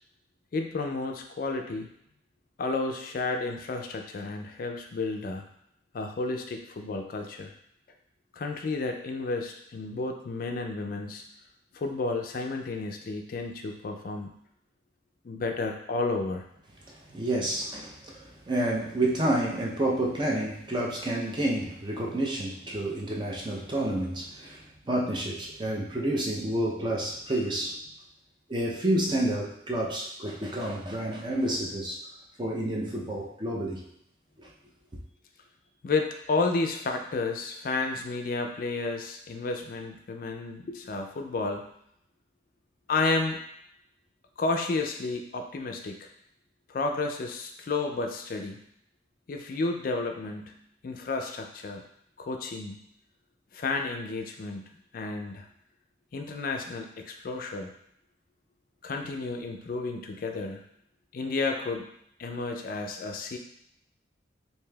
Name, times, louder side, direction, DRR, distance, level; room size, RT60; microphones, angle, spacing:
voice 1, 0.5-1.9 2.6-5.4 5.9-7.5 8.3-11.2 11.7-14.3 15.2-16.4 35.8-41.7 42.9-43.4 44.4-46.1 46.7-48.6 49.3-50.6 50.8-51.8 52.2-52.9 53.5-54.6 54.9-55.5 56.1-57.7 58.8-60.6 61.1-61.9 62.2-63.4, left 3 dB, 45° left, 3 dB, 0.3 m, -31 dB
voice 2, 17.1-27.8 28.5-32.0 32.4-33.8 34.4-34.5, right 1 dB, 25° right, -2 dB, 0.5 m, -29 dB
4.8 x 2.7 x 2.3 m, 0.73 s
head